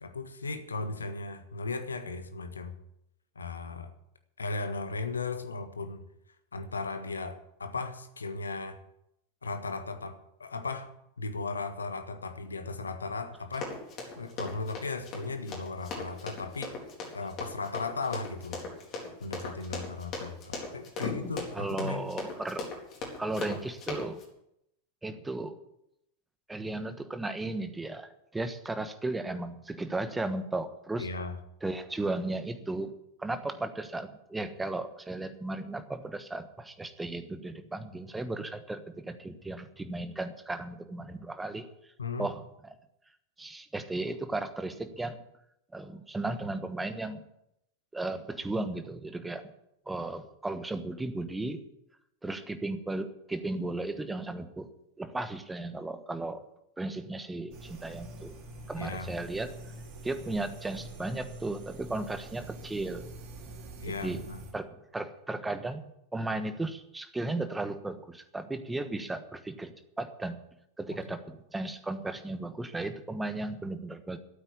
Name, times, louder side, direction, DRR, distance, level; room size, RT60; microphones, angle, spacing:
voice 1, 0.0-2.7 3.3-3.9 4.4-6.0 6.5-8.8 9.4-10.9 11.2-13.7 14.2-16.8 17.1-18.6 19.2-22.1 31.0-31.3 42.0-42.3 58.7-59.1 63.8-64.4, left 3 dB, 75° left, 9 dB, 1.5 m, -36 dB
Run, 13.5-24.2, left 3 dB, 35° left, 4.1 m, -38 dB
voice 2, 21.5-22.7 23.2-24.2 25.0-25.6 26.5-31.1 31.6-41.9 42.2-42.7 43.4-45.2 45.7-47.2 47.9-49.5 49.9-51.6 52.2-54.7 55.0-56.4 56.8-58.3 58.7-59.5 60.0-63.1 64.0-64.3 64.5-65.9 66.1-70.4 70.8-74.2, right 2 dB, 10° right, 10 dB, 1.3 m, -35 dB
sound 1, 57.5-64.5, right 1 dB, 40° right, 3.5 m, -45 dB
13.0 x 8.9 x 8.3 m, 0.79 s
figure-of-eight pair, 90°, 0 cm